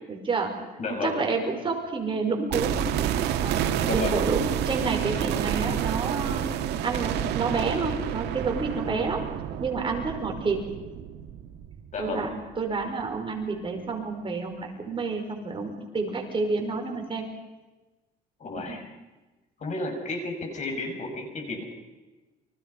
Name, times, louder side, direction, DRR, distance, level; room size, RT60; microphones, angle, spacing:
voice 1, 0.1-0.5 1.0-9.2 9.6-10.6 12.0-17.2 18.7-18.8, right 4 dB, 30° right, 2 dB, 5.6 m, -29 dB
voice 2, 0.8-1.2 3.8-4.3 11.9-12.3 18.4-18.8 19.6-21.6, left 2 dB, 45° left, 4 dB, 6.6 m, -32 dB
sound 1, 2.5-12.5 12.8-12.9, right 10 dB, 80° right, 1.9 m, -29 dB
29.5 x 25.5 x 5.6 m, 1.2 s
cardioid pair, 110°, 17 cm